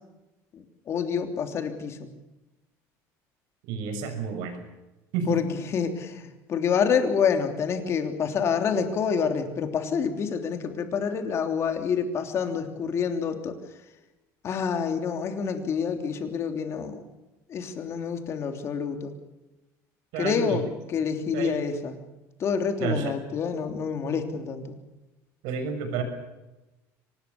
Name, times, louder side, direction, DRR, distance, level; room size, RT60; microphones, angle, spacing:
voice 1, 0.5-2.1 5.3-5.5 5.7-13.6 14.4-17.0 17.5-19.1 20.2-21.9 22.4-24.8, left 6 dB, 40° left, 6 dB, 3.2 m, -27 dB
voice 2, 3.7-4.6 5.1-5.4 20.1-20.6 21.3-21.6 22.8-23.2 25.4-26.0, right 5 dB, 75° right, 7 dB, 6.2 m, -30 dB
24.5 x 20.0 x 7.1 m, 1.0 s
cardioid pair, 140°, 7 cm